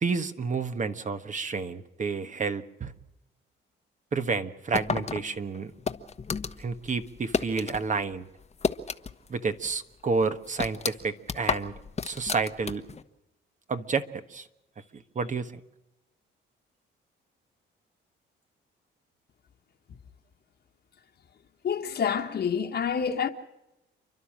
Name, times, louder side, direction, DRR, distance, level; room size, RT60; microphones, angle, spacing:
voice 1, 0.0-2.9 4.1-5.7 6.6-8.3 9.3-11.7 12.0-12.8 13.7-14.5 14.9-15.6, right 4 dB, 40° right, 1.4 m, -30 dB
sound 1, 4.7-7.8 8.1-9.4 9.6-9.7 10.2-13.0, left 5 dB, 35° left, 1.2 m, -31 dB
voice 2, 21.6-23.3, left 7 dB, 55° left, 1.6 m, -27 dB
30.0 x 12.0 x 7.5 m
cardioid pair, 90°, 20 cm